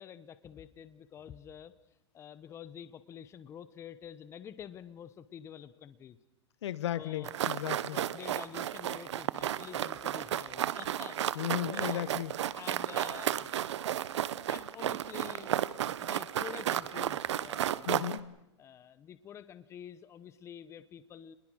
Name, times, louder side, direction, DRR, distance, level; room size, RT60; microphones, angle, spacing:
voice 1, 0.0-1.7 2.1-6.2 6.9-7.3 7.9-12.1 12.6-13.6 14.5-18.0 18.6-21.4, left 9 dB, 20° left, 14 dB, 0.9 m, -48 dB
voice 2, 6.6-8.0 11.3-12.3 17.8-18.3, left 12 dB, 75° left, 18 dB, 1.2 m, -35 dB
Running On Gravel, 7.2-18.2, right 11 dB, 85° right, 1.0 m, -33 dB
28.0 x 21.0 x 6.3 m, 0.89 s
supercardioid pair, 150°, 14 cm